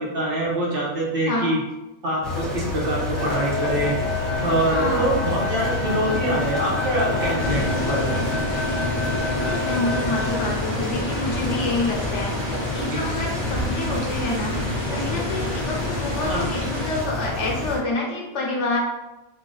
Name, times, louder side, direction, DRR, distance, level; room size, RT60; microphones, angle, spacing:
voice 1, 0.0-1.6 2.0-3.9 4.4-8.1 12.9-13.0 16.3-16.4, right 1 dB, 55° right, -3 dB, 1.1 m, -24 dB
sound 1, 2.2-17.8, left 2 dB, ahead, 0.9 m, -29 dB
sound 2, 3.1-10.3, left 3 dB, 75° right, 1.3 m, -29 dB
voice 2, 4.6-5.1 9.1-18.8, left 2 dB, 80° left, -1 dB, 1.2 m, -28 dB
sound 3, 7.4-17.0, left 1 dB, 25° left, 0.7 m, -30 dB
3.8 x 2.4 x 3.8 m, 1.0 s
omnidirectional pair, 1.2 m